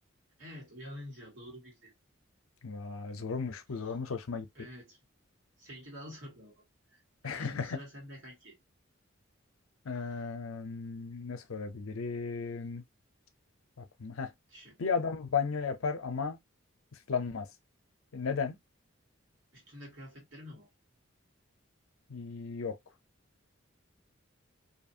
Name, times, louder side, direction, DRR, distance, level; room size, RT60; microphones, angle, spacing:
voice 1, 0.4-1.9 4.5-5.0 5.6-6.5 7.2-8.6 14.5-14.8 19.5-20.7, equal, 60° right, 1.7 m, -47 dB
voice 2, 2.6-4.5 7.2-7.8 9.8-12.8 13.8-14.3 14.8-16.4 17.1-17.5 18.1-18.6 22.1-22.8, left 5 dB, 85° left, 0.6 m, -35 dB
2.7 x 2.5 x 2.7 m
head